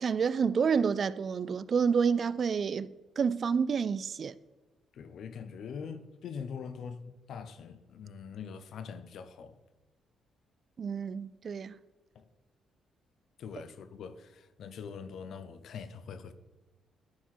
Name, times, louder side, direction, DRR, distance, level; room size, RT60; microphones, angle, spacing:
voice 1, 0.0-4.4 10.8-11.7, right 6 dB, 50° right, 0.3 m, -29 dB
voice 2, 4.9-9.6 12.1-12.2 13.4-16.3, left 6 dB, 65° left, 0.7 m, -43 dB
11.0 x 4.4 x 4.6 m
cardioid pair, 90°, 0 cm